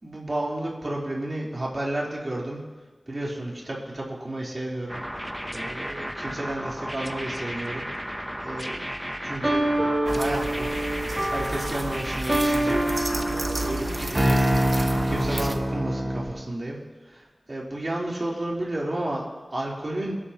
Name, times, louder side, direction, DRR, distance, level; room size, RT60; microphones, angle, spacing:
voice 1, 0.0-2.6 3.1-5.0 5.5-7.9 8.4-8.9 9.2-9.7 10.1-10.7 11.3-12.8 13.2-14.5 15.0-20.1, right 1 dB, 45° right, -4 dB, 3.7 m, -32 dB
sound 1, 4.9-15.5, equal, 5° right, 0.8 m, -34 dB
sound 2, 9.4-16.4, right 1 dB, 30° right, 1.9 m, -26 dB
sound 3, 10.1-15.6, right 2 dB, 65° right, 1.5 m, -33 dB
28.0 x 11.5 x 3.0 m, 1.3 s
wide cardioid pair, 55°, 0 cm